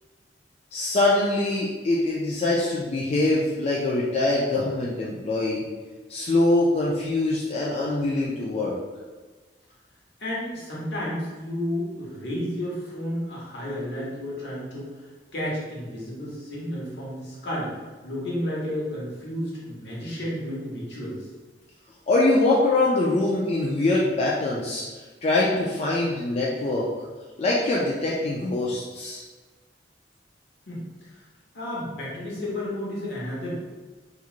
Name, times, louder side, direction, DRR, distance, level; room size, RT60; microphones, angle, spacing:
voice 1, 0.7-5.6 6.1-8.8 22.1-24.8 25.2-26.9 27.4-29.2, left 2 dB, 35° left, -5 dB, 0.3 m, -23 dB
voice 2, 10.2-14.9 15.3-17.7 18.0-21.1 30.7-30.8 31.1-31.2 31.5-33.6, left 1 dB, 70° left, -6 dB, 1.0 m, -32 dB
2.9 x 2.4 x 2.4 m, 1.3 s
head